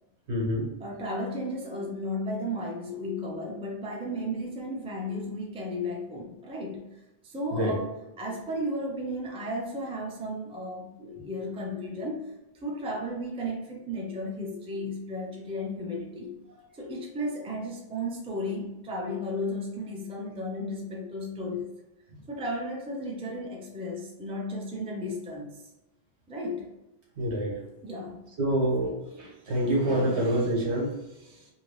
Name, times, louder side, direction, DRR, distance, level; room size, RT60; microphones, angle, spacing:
voice 1, 0.3-0.7 7.5-7.8 27.2-27.5 28.4-31.0, right 1 dB, 90° right, -2 dB, 1.3 m, -26 dB
voice 2, 0.8-12.3 12.6-16.3 16.7-21.7 22.3-25.6 26.3-26.7 27.8-28.3, left 1 dB, 10° right, -1 dB, 0.3 m, -34 dB
2.8 x 2.7 x 3.0 m, 0.97 s
omnidirectional pair, 1.1 m